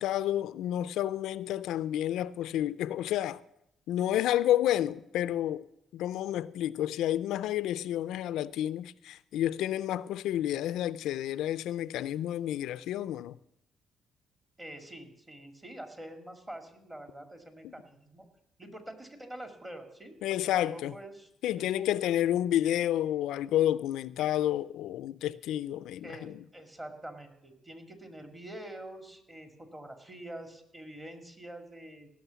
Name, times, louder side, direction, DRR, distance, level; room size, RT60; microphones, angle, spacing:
voice 1, 0.0-3.4 3.9-5.6 5.9-13.4 17.6-17.7 20.2-20.9 21.4-26.3, left 12 dB, 85° left, 0.4 m, -30 dB
voice 2, 14.6-18.3 18.6-21.3 21.6-22.5 26.0-32.1, right 1 dB, 20° right, 2.0 m, -46 dB
16.5 x 6.3 x 6.9 m
cardioid pair, 90°, 0 cm